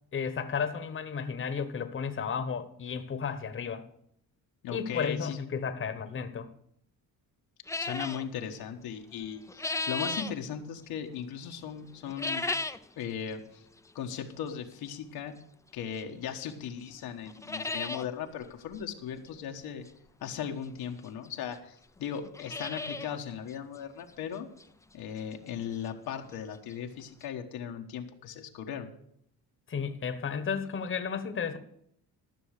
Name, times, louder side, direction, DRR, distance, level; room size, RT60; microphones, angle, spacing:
voice 1, 0.1-3.8 4.7-6.5 29.7-31.6, left 6 dB, 35° left, 10 dB, 1.1 m, -33 dB
voice 2, 4.6-5.4 7.8-12.4 13.0-13.6 13.9-15.3 15.7-19.9 20.2-24.5 24.9-28.9, left 8 dB, 90° left, 3 dB, 1.4 m, -38 dB
sound 1, 7.7-8.2 9.2-10.3 12.1-12.9 13.3-13.4 14.2-14.3 16.0-16.1 16.5-16.6 16.9-17.0 17.3-18.1 18.4-18.5 18.7-18.8 20.4-20.5 21.2-21.3 21.5-21.6 22.1-23.2 23.5-23.6 24.1-24.2 24.6-24.7 26.4-26.5 26.7-26.8 27.2-27.3, left 3 dB, 10° left, 0.4 m, -34 dB
14.0 x 6.4 x 6.5 m, 0.72 s
cardioid pair, 110°, 36 cm